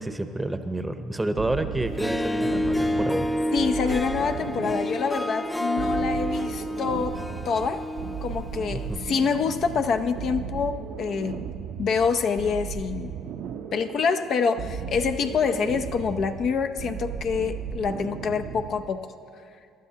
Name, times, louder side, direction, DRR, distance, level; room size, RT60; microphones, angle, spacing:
voice 1, 0.0-3.3 8.7-9.1, right 2 dB, 10° right, 8 dB, 0.8 m, -29 dB
sound 1, 1.4-19.0, right 7 dB, 65° right, 0.6 m, -36 dB
Harp, 1.8-9.3, left 1 dB, 10° left, 0.5 m, -29 dB
voice 2, 3.5-7.2 7.5-7.8 8.2-11.4 11.8-13.1 13.7-19.1, left 5 dB, 55° left, 7 dB, 0.6 m, -26 dB
24.0 x 11.5 x 2.9 m, 2.4 s
supercardioid pair, 90°, 0 cm